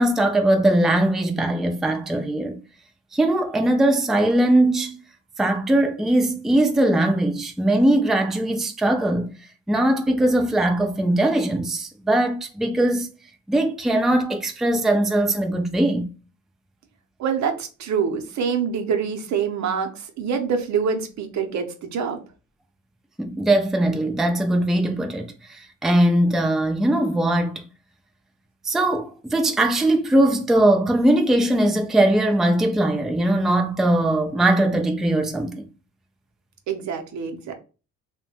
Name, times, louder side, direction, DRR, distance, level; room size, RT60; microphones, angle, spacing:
voice 1, 0.0-2.6 3.1-5.0 5.4-9.3 9.7-13.1 13.5-16.1 23.2-27.6 28.6-35.6, right 1 dB, ahead, 0.4 m, -20 dB
voice 2, 17.2-22.2 36.7-37.6, right 6 dB, 65° right, 0.6 m, -25 dB
2.8 x 2.1 x 2.7 m
cardioid pair, 90°, 30 cm